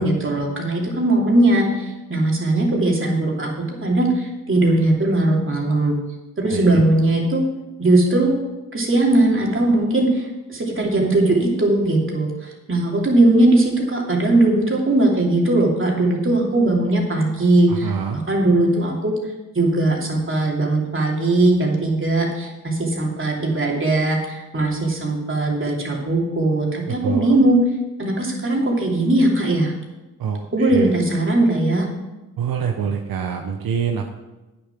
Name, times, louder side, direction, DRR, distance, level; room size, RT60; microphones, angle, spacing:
voice 1, 0.0-3.5 3.8-5.9 6.4-7.4 7.8-8.3 8.7-19.1 19.5-27.6 28.0-29.7 30.5-31.9, right 2 dB, 35° right, -1 dB, 2.9 m, -19 dB
voice 2, 6.5-6.8 17.7-18.2 26.9-27.4 30.2-30.9 32.4-34.1, right 7 dB, 80° right, 3 dB, 0.9 m, -26 dB
9.5 x 6.9 x 6.0 m, 1.1 s
cardioid pair, 70°, 34 cm